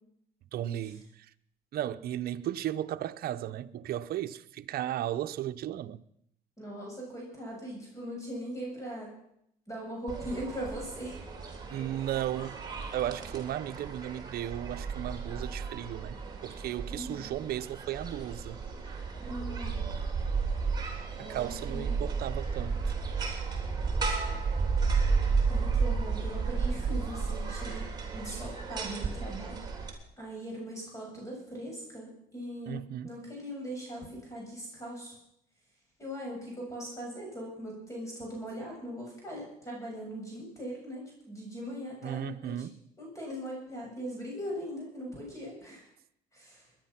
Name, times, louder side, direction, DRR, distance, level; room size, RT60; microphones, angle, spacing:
voice 1, 0.5-1.3 1.7-6.0 11.7-12.6 12.9-18.6 21.2-23.0 32.7-33.2 42.0-42.8, right 12 dB, 65° right, 0.8 m, -35 dB
voice 2, 6.6-9.1 9.7-11.2 16.9-17.3 19.2-19.8 21.1-22.0 24.0-24.2 25.5-27.9 28.1-29.6 30.2-32.8 33.0-35.1 36.0-42.6 43.0-45.9 46.3-46.7, equal, 20° left, 7.3 m, -40 dB
sound 1, 10.1-29.9, right 5 dB, 25° right, 3.6 m, -33 dB
21.5 x 10.5 x 5.9 m
cardioid pair, 110°, 17 cm